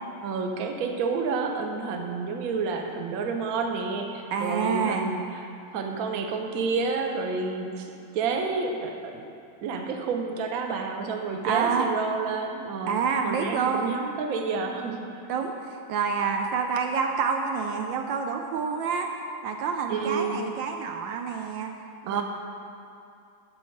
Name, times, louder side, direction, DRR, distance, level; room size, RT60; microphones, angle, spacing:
voice 1, 0.2-9.3 9.6-13.0 13.2-15.1 19.9-20.4 22.1-22.2, right 4 dB, 60° right, 3 dB, 1.1 m, -30 dB
voice 2, 4.3-5.1 11.4-11.9 12.9-14.0 15.3-19.1 19.4-21.7 22.0-22.2, right 6 dB, 75° right, 4 dB, 1.2 m, -28 dB
11.5 x 4.8 x 6.4 m, 2.6 s
omnidirectional pair, 2.2 m